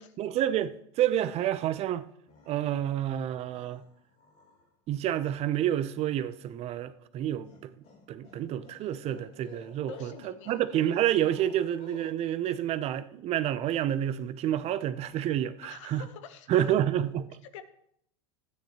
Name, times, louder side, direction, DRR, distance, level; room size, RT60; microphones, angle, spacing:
voice 1, 0.0-2.0 2.5-3.8 4.9-7.7 8.1-16.1 16.5-17.4, right 11 dB, 40° right, 0.6 m, -29 dB
sound 1, 1.4-1.9 2.3-3.1 3.5-4.7 7.4-12.1, left 5 dB, 55° left, 3.6 m, -54 dB
voice 2, 9.9-10.6 15.6-16.7 17.5-17.6, left 7 dB, 75° left, 1.0 m, -46 dB
13.0 x 9.4 x 2.9 m
hypercardioid pair, 100°, 16 cm